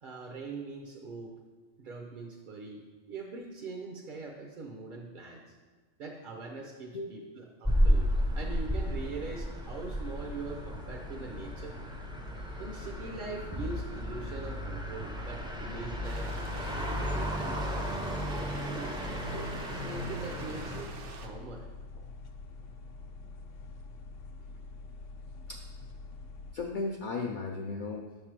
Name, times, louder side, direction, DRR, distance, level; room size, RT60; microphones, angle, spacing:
voice 1, 0.0-1.4 1.8-5.5 6.0-11.7 12.6-16.3 16.7-17.6 18.3-19.1 19.7-21.7, right 3 dB, 55° right, 0 dB, 0.7 m, -42 dB
sound 1, 7.6-20.8, equal, 5° right, 0.4 m, -33 dB
sound 2, 9.7-26.5, left 3 dB, 80° left, 0.9 m, -46 dB
sound 3, 16.0-21.3, right 4 dB, 70° right, 1.0 m, -47 dB
voice 2, 26.5-28.1, left 3 dB, 60° left, 0 dB, 0.5 m, -35 dB
6.5 x 3.3 x 6.0 m, 1.4 s
omnidirectional pair, 1.3 m